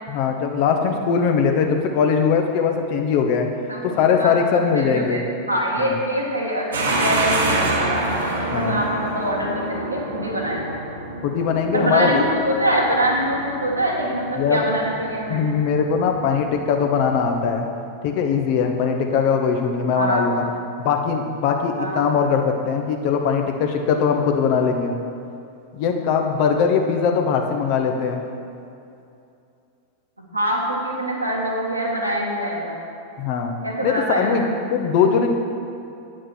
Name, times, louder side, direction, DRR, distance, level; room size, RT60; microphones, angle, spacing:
voice 1, 0.1-3.5 3.8-5.2 5.8-5.9 8.5-8.8 11.2-12.2 14.3-14.6 15.3-17.7 18.0-20.4 20.8-24.9 25.7-28.2 33.2-33.5 33.8-34.4 34.7-35.3, left 6 dB, 45° left, 4 dB, 1.0 m, -21 dB
voice 2, 3.7-4.3 4.7-5.2 5.5-8.0 8.5-10.8 11.7-15.5 19.9-20.3 21.8-22.1 30.2-32.8 33.6-34.5 35.0-35.1, right 1 dB, 85° right, -3 dB, 2.0 m, -24 dB
sound 1, 6.7-17.5, right 2 dB, 70° right, 1.6 m, -28 dB
9.4 x 6.4 x 6.2 m, 2.6 s
figure-of-eight pair, 90°, 0 cm